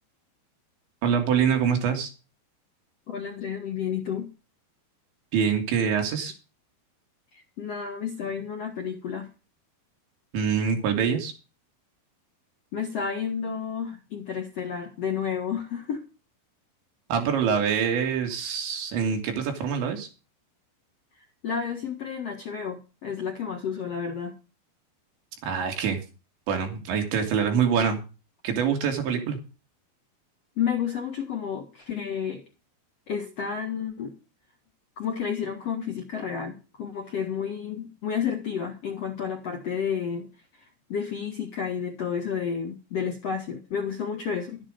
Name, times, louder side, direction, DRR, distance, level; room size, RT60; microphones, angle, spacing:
voice 1, 1.0-2.1 5.3-6.3 10.3-11.3 17.1-20.1 25.4-26.0 26.5-28.0 28.4-29.4, right 7 dB, 90° right, 5.3 m, -25 dB
voice 2, 3.1-4.3 7.3-9.3 12.7-16.0 21.4-24.3 30.6-32.4 33.1-34.2 35.0-44.6, left 7 dB, 60° left, 1.7 m, -31 dB
12.5 x 10.0 x 5.2 m
omnidirectional pair, 5.0 m